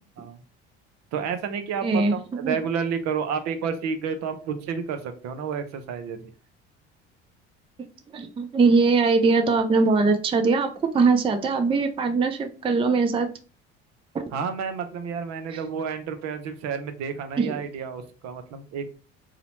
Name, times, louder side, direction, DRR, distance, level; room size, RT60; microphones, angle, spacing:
voice 1, 1.1-6.3 14.3-18.9, right 6 dB, 60° right, 8 dB, 0.6 m, -30 dB
voice 2, 1.8-2.6 8.1-10.7 10.9-13.3 15.5-15.6 17.4-17.5, right 4 dB, 15° right, 6 dB, 0.4 m, -21 dB
2.8 x 2.1 x 2.9 m, 0.37 s
hypercardioid pair, 70°, 31 cm